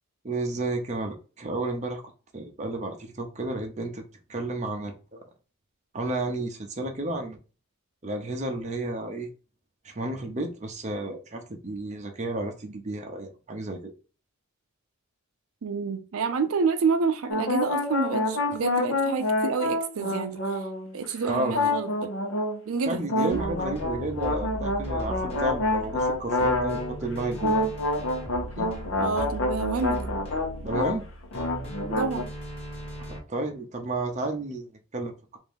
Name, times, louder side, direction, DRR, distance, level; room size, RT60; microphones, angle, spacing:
voice 1, 0.2-2.0 2.3-4.0 4.3-5.2 5.9-7.4 8.0-9.3 9.8-13.9 21.3-21.7 22.9-27.7 28.6-28.7 30.6-31.0 33.0-35.4, right 2 dB, 35° right, 0.7 m, -32 dB
voice 2, 15.6-20.6 20.9-22.1 22.6-23.4 29.0-30.1 31.9-32.3, right 5 dB, 80° right, 0.5 m, -28 dB
sound 1, 17.3-21.0 21.5-22.6 23.1-27.0 27.4-31.0 31.2-32.2, left 2 dB, 65° left, 0.9 m, -27 dB
sound 2, 23.3-33.2, right 1 dB, 30° left, 1.3 m, -37 dB
3.6 x 2.6 x 3.5 m
head